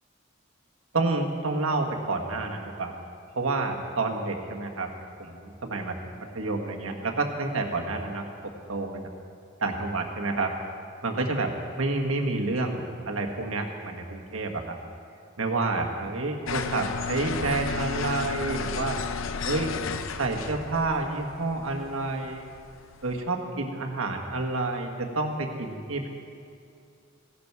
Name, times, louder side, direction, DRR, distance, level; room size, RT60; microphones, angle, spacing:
voice 1, 0.9-2.9 3.3-4.9 5.2-8.2 8.7-9.0 9.6-10.5 11.0-14.8 15.4-19.0 19.4-19.7 20.2-22.5 23.0-26.1, right 3 dB, 90° right, 2 dB, 1.5 m, -29 dB
sound 1, 16.5-23.2, left 5 dB, 70° left, 0.6 m, -33 dB
16.5 x 11.5 x 4.7 m, 2.5 s
head